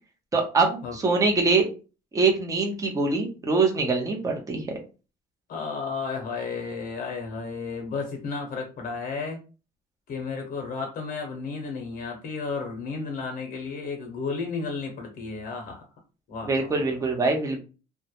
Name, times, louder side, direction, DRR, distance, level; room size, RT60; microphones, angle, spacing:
voice 1, 0.3-1.6 2.1-4.7 16.5-17.6, right 3 dB, 20° right, 1 dB, 0.6 m, -23 dB
voice 2, 5.5-9.4 10.1-15.8 16.3-17.0, left 4 dB, 55° left, 2 dB, 0.7 m, -33 dB
2.2 x 2.0 x 2.8 m, 0.33 s
cardioid pair, 110°, 17 cm